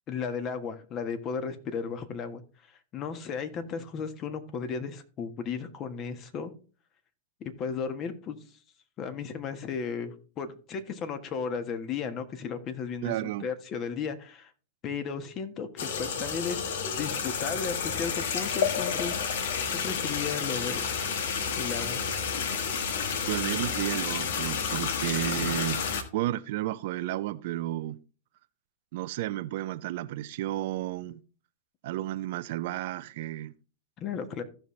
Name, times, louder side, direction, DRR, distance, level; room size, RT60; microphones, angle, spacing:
voice 1, 0.1-2.4 2.7-6.5 7.4-8.4 9.0-13.1 13.4-14.5 14.8-16.6 17.0-20.8 21.6-22.0 34.0-34.4, left 6 dB, 35° left, 1.3 m, -35 dB
voice 2, 13.0-13.5 23.3-25.8 26.1-28.0 28.9-31.2 31.8-33.5, right 15 dB, 60° right, 0.6 m, -32 dB
sound 1, 15.8-26.0, left 6 dB, 70° left, 1.5 m, -30 dB
15.0 x 5.6 x 3.2 m
hypercardioid pair, 120°, 0 cm